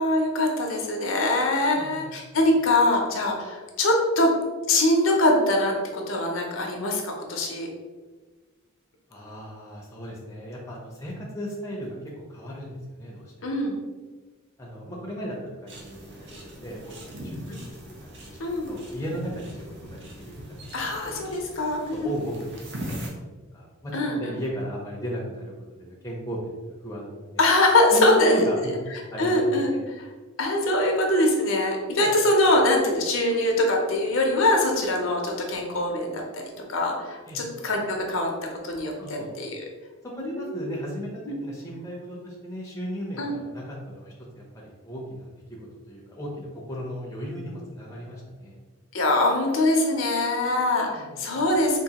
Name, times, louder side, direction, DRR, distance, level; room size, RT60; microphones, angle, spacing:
voice 1, 0.0-4.3 4.7-7.7 13.4-13.8 17.5-17.6 18.4-18.7 20.7-22.1 23.9-24.2 27.4-28.4 29.2-29.7 30.4-36.4 36.7-38.3 38.6-39.6 40.2-40.7 41.3-41.4 43.2-43.3 48.9-51.8, left 1 dB, 60° left, 1 dB, 0.6 m, -23 dB
voice 2, 1.7-2.1 9.1-12.0 12.3-13.3 14.6-17.6 18.0-18.4 18.7-20.5 21.0-21.1 21.9-23.1 23.5-25.5 25.8-27.4 27.9-28.7 29.1-29.3 29.6-29.8 32.0-32.1 37.3-37.4 39.0-39.3 40.2-41.1 41.4-45.6 45.9-48.6 50.9-51.2, equal, 15° left, -3 dB, 0.6 m, -36 dB
sound 1, 15.7-23.1, equal, 50° right, 0.7 m, -40 dB
3.7 x 2.6 x 2.8 m, 1.3 s
head